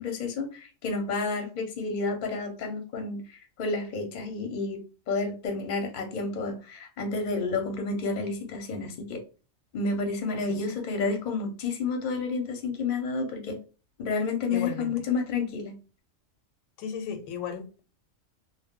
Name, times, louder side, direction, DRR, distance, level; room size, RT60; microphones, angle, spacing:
voice 1, 0.0-9.2 9.7-13.6 14.0-15.7, left 4 dB, 50° left, 0.6 m, -30 dB
voice 2, 14.5-14.9 16.8-17.8, left 7 dB, 90° left, 1.0 m, -35 dB
2.1 x 2.0 x 3.5 m
omnidirectional pair, 1.3 m